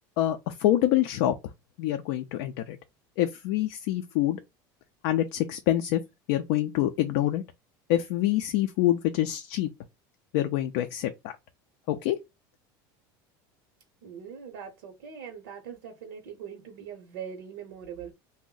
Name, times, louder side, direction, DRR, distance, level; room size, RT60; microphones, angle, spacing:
voice 1, 0.2-1.3 1.8-2.8 3.2-4.4 5.0-6.0 6.3-7.4 7.9-9.7 10.3-11.3 11.9-12.2, left 13 dB, 70° left, 0.4 m, -26 dB
voice 2, 14.0-18.1, right 7 dB, 85° right, 0.7 m, -42 dB
2.6 x 2.0 x 3.8 m
supercardioid pair, 115°, 11 cm